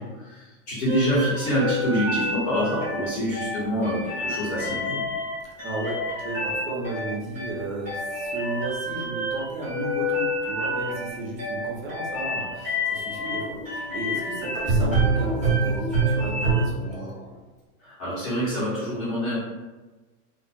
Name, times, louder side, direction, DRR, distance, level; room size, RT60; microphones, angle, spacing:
voice 1, 0.0-5.0 17.8-19.4, equal, 30° left, -10 dB, 1.4 m, -26 dB
sound 1, 0.9-16.6, right 1 dB, 10° right, 0.4 m, -27 dB
voice 2, 5.4-17.1, right 1 dB, 65° right, -2 dB, 0.8 m, -34 dB
Dog, 12.7-14.2 15.0-17.4, left 2 dB, 65° left, 1.2 m, -39 dB
2.9 x 2.0 x 2.5 m, 1.2 s
supercardioid pair, 180°, 44 cm